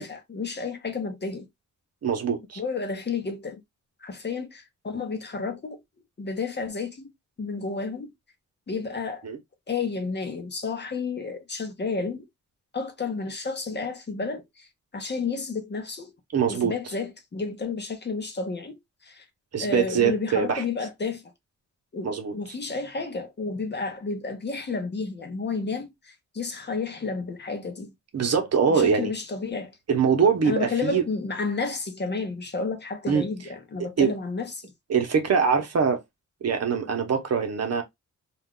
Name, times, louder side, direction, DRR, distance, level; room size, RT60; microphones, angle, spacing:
voice 1, 0.0-1.5 2.6-3.6 4.0-5.8 6.2-7.1 7.4-8.1 8.7-9.2 9.7-12.3 12.7-14.7 14.9-16.1 16.5-18.8 19.0-19.2 19.6-21.3 21.9-27.9 28.7-29.8 30.4-34.7, left 4 dB, 35° left, 0.8 m, -31 dB
voice 2, 2.0-2.6 9.2-9.4 16.3-16.7 19.5-20.6 22.0-22.3 28.1-29.1 29.9-31.0 33.1-33.2 34.0-34.1 34.9-36.0 36.4-37.8, right 6 dB, 55° right, 0.8 m, -23 dB
2.4 x 2.3 x 3.6 m
wide cardioid pair, 145°, 31 cm